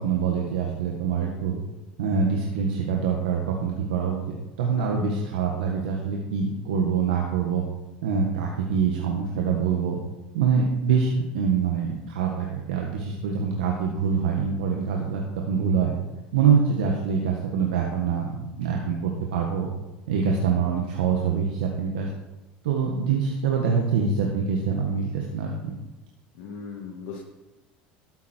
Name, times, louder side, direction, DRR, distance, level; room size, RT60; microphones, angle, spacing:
voice 1, 0.0-1.6 2.0-7.6 8.0-10.0 10.3-15.2 15.5-15.9 16.3-19.7 20.1-22.1 22.6-25.7, right 6 dB, 90° right, 0 dB, 1.7 m, -25 dB
voice 2, 26.3-27.2, left 6 dB, 65° left, -2 dB, 2.1 m, -38 dB
13.0 x 8.2 x 4.6 m, 1.0 s
supercardioid pair, 110°, 4 cm